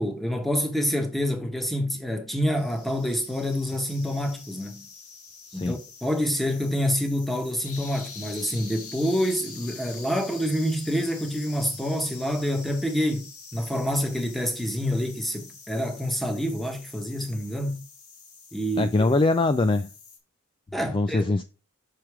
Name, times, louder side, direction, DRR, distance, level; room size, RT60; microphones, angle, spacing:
voice 1, 0.0-4.9 5.5-17.8 18.5-18.9 20.7-21.3, equal, ahead, 1.0 m, -27 dB
sound 1, 2.6-20.2, left 5 dB, 70° left, 2.2 m, -45 dB
voice 2, 18.8-19.9 20.9-21.4, left 3 dB, 20° left, 0.3 m, -22 dB
6.1 x 4.9 x 4.7 m
head